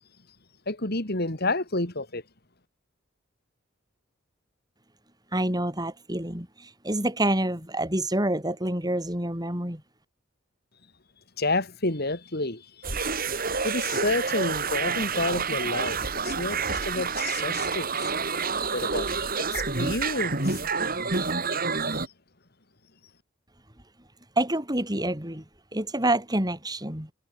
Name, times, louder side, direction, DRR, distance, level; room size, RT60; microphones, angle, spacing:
voice 1, 0.7-2.2 11.4-12.6 13.1-13.2 13.5-16.0 16.2-18.1 18.6-20.6, left 2 dB, 50° left, 3.2 m, -30 dB
voice 2, 5.3-9.8 24.4-25.4 25.7-27.1, right 1 dB, 20° right, 7.0 m, -27 dB
sound 1, 12.8-22.1, right 4 dB, 45° right, 5.0 m, -28 dB
head